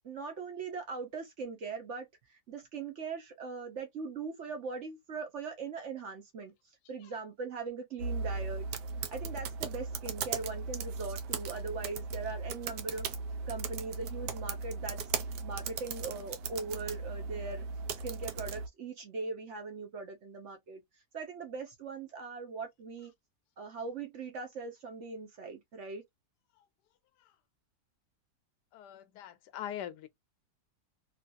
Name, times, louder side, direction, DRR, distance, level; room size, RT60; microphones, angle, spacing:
voice 1, 0.0-2.1 2.5-6.5 6.9-8.7 9.1-13.1 13.5-15.0 15.4-17.7 18.0-20.8 21.1-23.1 23.6-26.0, right 4 dB, 55° right, 1.0 m, -40 dB
sound 1, 8.0-18.7, right 5 dB, 85° right, 1.3 m, -37 dB
voice 2, 28.7-30.1, left 10 dB, 90° left, 1.2 m, -42 dB
3.0 x 2.9 x 2.5 m
omnidirectional pair, 1.8 m